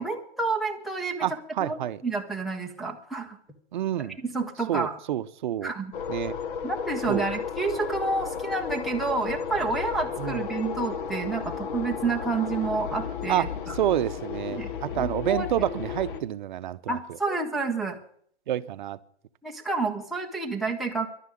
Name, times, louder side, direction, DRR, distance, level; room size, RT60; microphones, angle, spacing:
voice 1, 0.0-1.2 1.6-3.4 4.2-4.9 5.6-5.9 6.6-13.8 14.5-14.7 15.0-15.5 16.9-18.0 19.4-21.1, right 3 dB, ahead, 0.7 m, -29 dB
voice 2, 1.2-2.0 3.7-4.2 4.7-5.7 6.1-6.4 7.1-7.3 10.2-10.4 13.3-17.0 18.5-19.0, right 11 dB, 45° right, 0.8 m, -28 dB
sound 1, 5.9-16.2, left 7 dB, 50° left, 1.2 m, -33 dB
11.5 x 9.7 x 9.9 m
hypercardioid pair, 160°, 34 cm